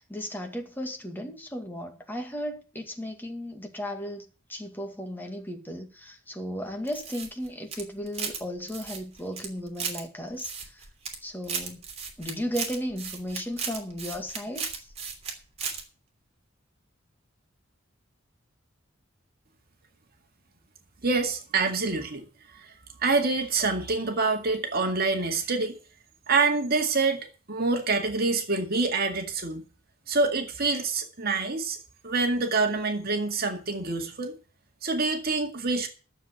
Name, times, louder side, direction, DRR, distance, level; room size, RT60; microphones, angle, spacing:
voice 1, 0.0-10.8 11.2-11.8 12.2-14.8, equal, 10° left, 2.2 m, -35 dB
sound 1, 6.9-8.4 8.7-10.0 10.4-11.2 11.4-15.3 15.6-15.8, right 6 dB, 30° right, 3.0 m, -35 dB
voice 2, 21.0-22.2 22.5-22.7 23.0-25.8 26.3-29.7 30.1-31.8 32.0-34.4 34.8-35.9, right 3 dB, 50° right, 2.1 m, -26 dB
11.5 x 7.5 x 8.2 m
head